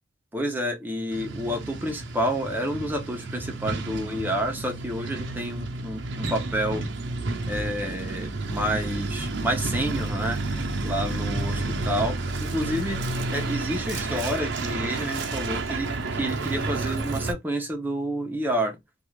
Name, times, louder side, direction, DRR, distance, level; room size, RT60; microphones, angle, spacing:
voice 1, 0.3-6.9 7.5-18.8, equal, 10° right, 0.7 m, -29 dB
Truck, 1.1-17.3, right 3 dB, 75° right, 0.6 m, -30 dB
2.5 x 2.4 x 3.1 m
head